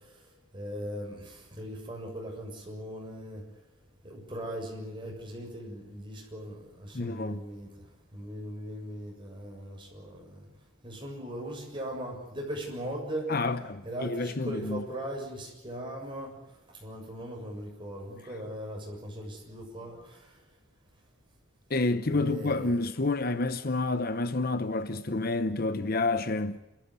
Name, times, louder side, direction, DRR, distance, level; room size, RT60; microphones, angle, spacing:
voice 1, 0.5-3.4 4.0-7.7 8.1-10.5 10.8-13.3 13.8-16.3 16.8-20.2 22.1-22.8, equal, 25° right, 7.1 m, -39 dB
voice 2, 6.9-7.4 13.3-14.8 21.7-26.6, left 2 dB, 45° left, 0.8 m, -29 dB
28.5 x 14.5 x 9.7 m
head